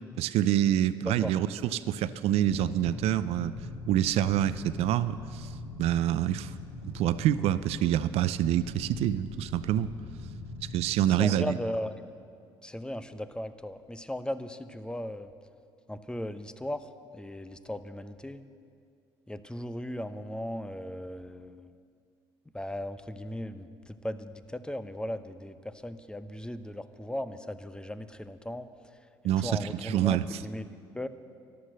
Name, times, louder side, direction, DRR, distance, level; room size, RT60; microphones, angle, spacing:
voice 1, 0.2-3.5 3.9-5.5 5.8-6.5 6.8-9.9 10.7-11.5 29.2-30.4, right 11 dB, 65° right, 15 dB, 0.5 m, -26 dB
sound 1, 2.4-12.0, left 2 dB, 75° left, 3.3 m, -42 dB
voice 2, 11.1-12.0 12.6-15.3 15.9-18.4 19.3-21.7 22.5-28.7 29.4-30.7 30.9-31.1, left 1 dB, 10° left, 11 dB, 0.8 m, -37 dB
13.5 x 11.5 x 6.4 m, 2.3 s
hypercardioid pair, 60°, 11 cm